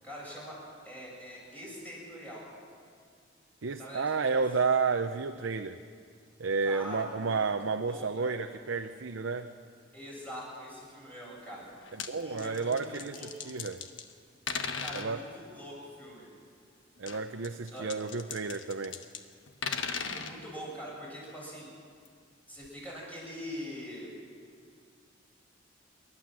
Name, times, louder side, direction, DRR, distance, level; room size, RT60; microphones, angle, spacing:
voice 1, 0.0-0.5 0.8-2.4 3.8-4.3 6.6-7.5 7.9-8.5 9.9-11.7 12.2-13.5 14.8-16.2 17.7-17.8 20.0-21.7 22.5-24.1, equal, 10° left, -5 dB, 7.6 m, -43 dB
voice 2, 3.6-5.8 6.4-9.5 11.9-13.8 14.9-15.2 17.0-19.0, right 4 dB, 85° right, 6 dB, 0.7 m, -31 dB
sound 1, 11.7-12.1 12.4-14.1 14.5-15.1 17.0-19.2 19.5-20.3 22.0-22.1 22.6-22.7, left 6 dB, 75° left, 1.3 m, -37 dB
28.0 x 12.5 x 7.5 m, 2.1 s
head